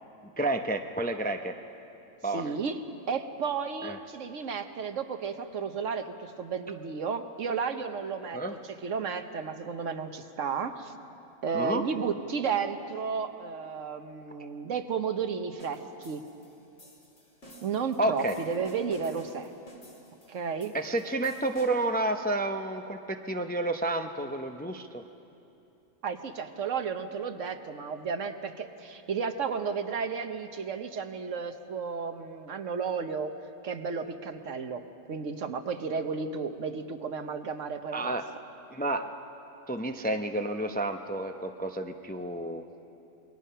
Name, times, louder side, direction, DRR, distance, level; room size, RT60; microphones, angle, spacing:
voice 1, 0.4-1.5 2.2-2.5 3.8-4.0 8.3-8.5 11.5-11.8 18.0-18.4 20.7-25.0 37.9-38.2 38.7-39.1 39.7-42.6, right 2 dB, 10° left, 5 dB, 0.5 m, -30 dB
voice 2, 2.3-8.4 8.7-10.9 11.4-16.3 17.6-19.5 20.3-20.7 26.0-33.4 33.6-38.2, right 5 dB, 70° right, 8 dB, 1.3 m, -33 dB
sound 1, 15.6-22.0, right 1 dB, 65° left, 3.4 m, -52 dB
27.5 x 21.5 x 5.6 m, 2.8 s
omnidirectional pair, 1.3 m